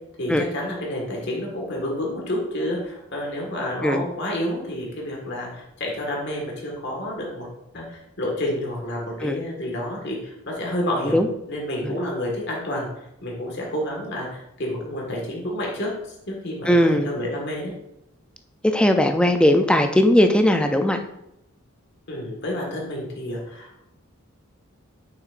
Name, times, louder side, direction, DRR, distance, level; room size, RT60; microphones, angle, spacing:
voice 1, 0.2-7.5 7.7-11.2 11.5-12.9 13.2-15.9 16.3-16.7 17.0-17.7 22.1-23.9, left 1 dB, 55° left, -2 dB, 1.7 m, -29 dB
voice 2, 16.7-17.1 18.6-21.0, left 1 dB, 5° left, 6 dB, 0.4 m, -18 dB
6.5 x 5.9 x 2.5 m, 0.82 s
head